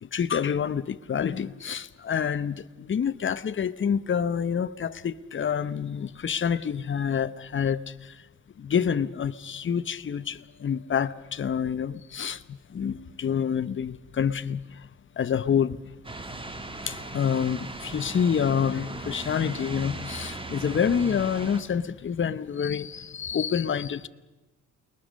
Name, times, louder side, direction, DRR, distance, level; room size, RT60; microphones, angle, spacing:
voice 1, 0.0-8.2 8.6-14.9 15.2-15.8 16.8-24.1, left 7 dB, 40° left, 1.0 m, -27 dB
sound 1, 16.0-21.6, right 2 dB, 15° right, 2.3 m, -38 dB
28.5 x 21.5 x 6.4 m
cardioid pair, 90°, 30 cm